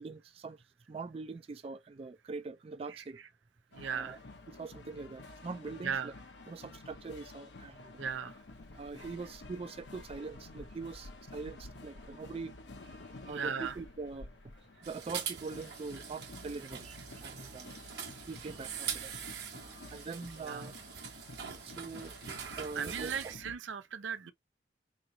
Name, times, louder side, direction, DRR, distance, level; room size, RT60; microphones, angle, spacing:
voice 1, 0.0-3.2 3.9-4.2 4.5-6.1 6.5-8.0 8.7-12.5 13.2-14.5 14.8-17.7 18.3-19.1 19.9-20.8 21.6-22.2 22.6-23.3, right 4 dB, 30° right, 0.3 m, -43 dB
sound 1, 3.7-23.6, left 2 dB, 70° left, 0.8 m, -51 dB
voice 2, 3.7-4.2 5.8-6.1 8.0-8.4 13.3-13.8 20.4-20.7 22.7-24.3, right 7 dB, 90° right, 0.6 m, -37 dB
sound 2, 14.8-23.4, right 7 dB, 60° right, 1.0 m, -43 dB
3.9 x 3.0 x 2.6 m
head